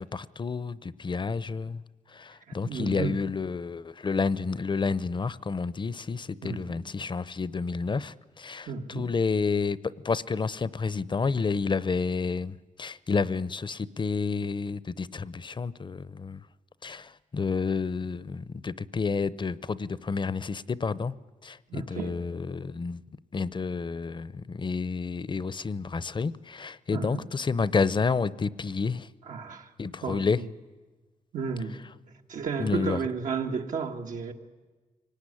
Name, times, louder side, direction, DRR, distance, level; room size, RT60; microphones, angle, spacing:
voice 1, 0.0-1.8 2.1-16.4 16.8-21.1 21.4-23.0 23.3-29.1 29.8-30.4 32.6-33.0, left 4 dB, 40° left, 19 dB, 0.7 m, -30 dB
voice 2, 2.5-3.2 6.4-6.9 8.7-9.1 21.7-22.2 26.9-27.3 29.3-29.7 30.0-30.5 31.3-31.8 32.3-34.3, right 5 dB, 85° right, 3 dB, 1.7 m, -33 dB
23.5 x 18.5 x 9.9 m, 1.3 s
cardioid pair, 80°, 13 cm